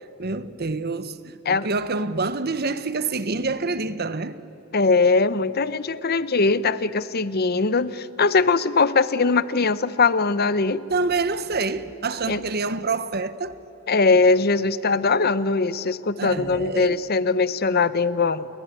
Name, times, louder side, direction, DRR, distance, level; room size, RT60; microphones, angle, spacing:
voice 1, 0.0-4.4 10.9-13.6 16.2-17.0, right 3 dB, 50° right, 1.1 m, -27 dB
voice 2, 4.7-10.8 12.3-12.4 13.9-18.5, left 4 dB, 50° left, 0.8 m, -21 dB
29.5 x 21.5 x 9.3 m
head